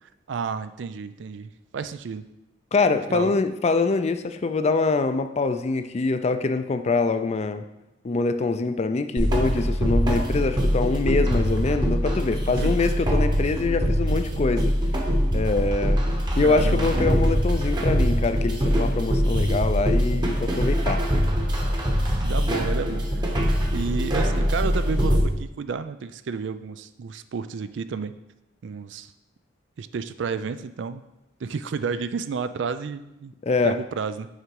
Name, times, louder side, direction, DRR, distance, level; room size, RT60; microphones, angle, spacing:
voice 1, 0.0-2.3 3.1-3.3 12.5-12.8 16.4-16.9 22.2-23.3 23.7-28.1 28.6-29.1 29.8-31.0 31.4-33.3 33.6-34.3, right 5 dB, 75° right, 12 dB, 0.4 m, -31 dB
voice 2, 2.7-7.6 8.0-14.7 15.3-16.0 16.4-21.0 33.4-33.8, left 3 dB, 35° left, 10 dB, 0.4 m, -24 dB
sound 1, 9.2-25.2, equal, 25° right, 1.0 m, -23 dB
6.5 x 5.0 x 4.6 m, 0.93 s
head